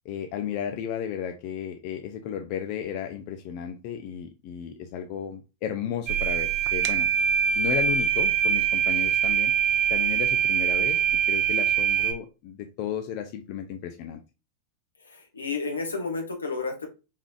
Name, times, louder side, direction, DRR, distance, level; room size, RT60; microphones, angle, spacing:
voice 1, 0.0-7.1 7.6-9.5 9.9-14.2, left 9 dB, 45° left, 5 dB, 0.6 m, -34 dB
sound 1, 6.1-12.1, right 8 dB, 40° right, 0.7 m, -23 dB
voice 2, 15.1-16.9, left 4 dB, 75° left, 3 dB, 1.3 m, -31 dB
4.7 x 3.7 x 2.3 m, 0.30 s
figure-of-eight pair, 90°, 0 cm